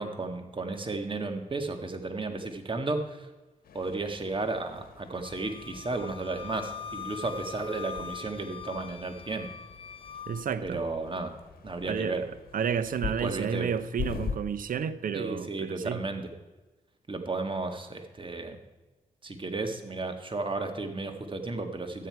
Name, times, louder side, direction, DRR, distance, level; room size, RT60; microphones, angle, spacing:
voice 1, 0.0-3.3 3.7-9.5 10.6-11.3 11.6-12.2 13.0-13.7 15.1-16.3 17.1-18.6 19.2-22.1, right 3 dB, 35° right, 5 dB, 1.7 m, -33 dB
sound 1, 3.6-14.4, left 6 dB, 75° left, 1.3 m, -43 dB
Wind instrument woodwind instrument, 5.2-10.4, left 7 dB, 35° left, 0.8 m, -42 dB
voice 2, 10.3-10.8 11.9-12.3 12.5-15.5 15.8-16.0, right 7 dB, 65° right, 13 dB, 0.7 m, -31 dB
12.5 x 9.2 x 4.7 m, 1.1 s
cardioid pair, 65°, 15 cm